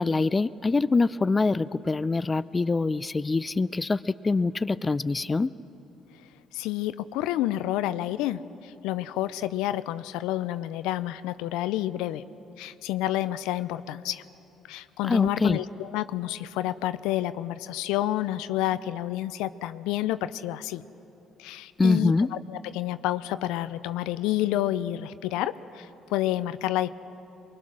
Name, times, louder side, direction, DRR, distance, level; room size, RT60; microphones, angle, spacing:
voice 1, 0.0-5.5 15.0-15.6 21.8-22.3, left 3 dB, 25° left, 16 dB, 0.4 m, -24 dB
voice 2, 6.5-12.2 12.6-14.2 14.7-20.8 21.4-26.9, left 14 dB, 80° left, 14 dB, 0.5 m, -29 dB
23.5 x 21.5 x 6.2 m, 2.9 s
hypercardioid pair, 60°, 0 cm